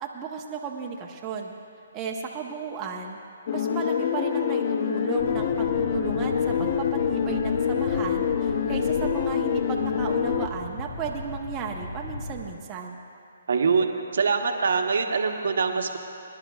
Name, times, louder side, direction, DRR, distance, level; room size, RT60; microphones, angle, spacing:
voice 1, 0.0-1.5 1.9-3.2 3.5-13.0, right 6 dB, 20° right, -1 dB, 0.9 m, -34 dB
sound 1, 3.5-10.5, left 8 dB, 50° left, 0.5 m, -26 dB
sound 2, 5.2-12.5, left 1 dB, 70° left, 1.9 m, -36 dB
voice 2, 13.5-16.0, right 5 dB, 70° right, 4 dB, 1.0 m, -24 dB
24.0 x 10.5 x 2.4 m, 2.5 s
hypercardioid pair, 150°, 0 cm